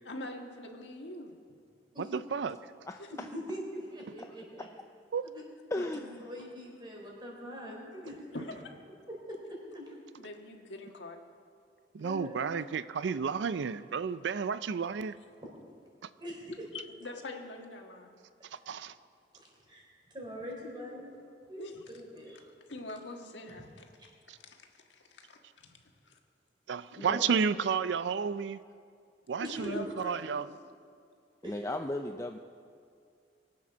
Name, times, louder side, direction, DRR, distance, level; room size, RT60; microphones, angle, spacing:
voice 1, 0.0-1.3 3.0-3.1 5.7-6.1 8.3-8.7 10.2-11.2 16.7-18.1 21.6-21.8 22.3-23.9 24.3-26.2 29.6-30.4, left 2 dB, 85° left, 2 dB, 1.6 m, -44 dB
voice 2, 2.1-2.6 5.1-5.3 11.9-15.2 18.5-18.9 24.3-24.4 26.7-28.6 29.3-30.5, right 6 dB, 75° right, 15 dB, 0.4 m, -32 dB
voice 3, 3.2-4.7 5.2-5.4 5.9-8.2 9.1-9.9 12.0-12.4 16.2-16.7 18.4-18.5 19.3-19.8 20.1-21.2 21.5-21.6 21.9-22.4 27.0-27.2 29.4-29.8 31.4-31.6, equal, 25° right, -2 dB, 3.8 m, -42 dB
voice 4, 5.7-6.2 31.4-32.4, left 1 dB, 15° left, 4 dB, 0.4 m, -35 dB
23.5 x 8.6 x 6.1 m, 2.3 s
head